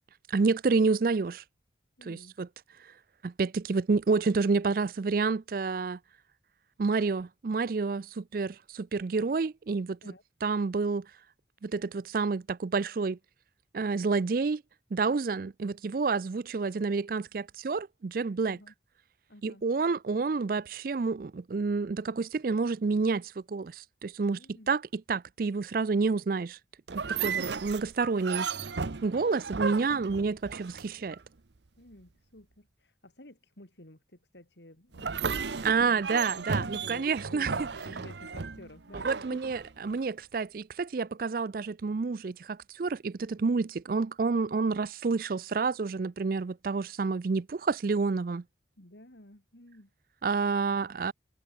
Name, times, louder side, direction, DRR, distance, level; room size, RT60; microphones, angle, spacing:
voice 1, 0.3-1.4 2.1-2.5 3.4-6.0 6.8-8.0 8.3-8.5 8.9-9.9 10.4-11.0 11.7-13.2 13.7-14.6 14.9-18.6 19.4-23.2 23.5-23.7 24.0-24.4 24.7-26.5 26.9-28.5 29.0-31.1 35.6-37.5 39.0-42.3 42.8-48.4 50.2-51.1, right 4 dB, 50° right, 0.4 m, -29 dB
voice 2, 2.0-2.4 10.0-10.2 18.4-18.7 19.3-19.6 24.3-24.7 31.8-39.4 48.8-49.9, left 1 dB, 75° left, 3.9 m, -52 dB
sound 1, 26.9-31.2 34.9-40.0, right 5 dB, 75° right, 0.9 m, -35 dB
head